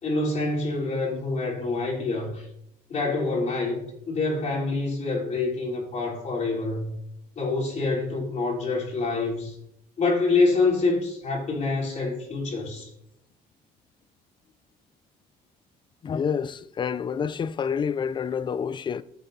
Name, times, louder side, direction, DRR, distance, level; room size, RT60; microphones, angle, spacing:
voice 1, 0.0-2.5 2.9-6.9 7.4-9.6 10.0-12.9, left 3 dB, 45° left, 3.6 m, -26 dB
voice 2, 16.0-19.0, left 7 dB, 30° left, 0.4 m, -28 dB
15.5 x 7.8 x 2.7 m
cardioid pair, 110°, 17 cm